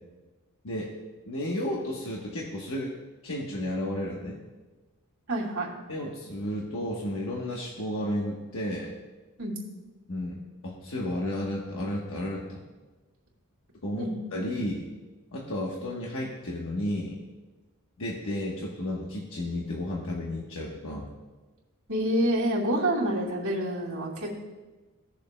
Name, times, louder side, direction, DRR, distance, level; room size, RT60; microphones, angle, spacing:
voice 1, 1.3-2.9 3.2-4.4 5.9-8.9 10.1-12.6 13.8-14.9 15.3-17.2 18.0-21.1, left 1 dB, 65° left, -3 dB, 1.2 m, -32 dB
voice 2, 5.3-5.7 9.4-9.6 14.0-14.1 21.9-24.4, right 1 dB, 70° right, -5 dB, 2.6 m, -27 dB
17.0 x 6.9 x 2.2 m, 1.2 s
head